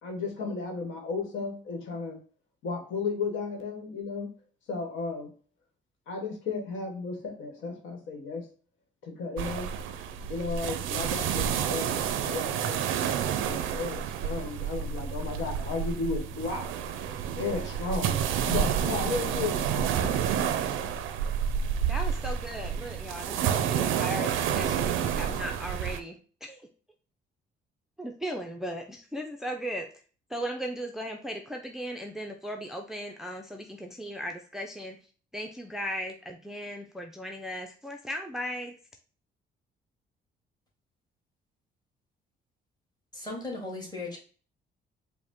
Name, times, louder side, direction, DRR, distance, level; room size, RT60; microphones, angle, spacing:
voice 1, 0.0-2.2 2.6-4.3 4.7-5.3 6.1-8.4 9.0-9.7 10.3-13.1 13.4-16.6 17.0-19.6 19.9-20.1, left 4 dB, 80° left, 2 dB, 1.1 m, -34 dB
sound 1, 9.4-26.0, right 8 dB, 90° right, 0.4 m, -29 dB
voice 2, 21.9-26.6 28.0-29.9 30.3-35.0 35.3-38.8, equal, ahead, 3 dB, 0.4 m, -37 dB
voice 3, 43.1-44.2, left 2 dB, 20° left, -2 dB, 1.9 m, -37 dB
4.9 x 2.1 x 3.6 m, 0.40 s
cardioid pair, 90°, 20 cm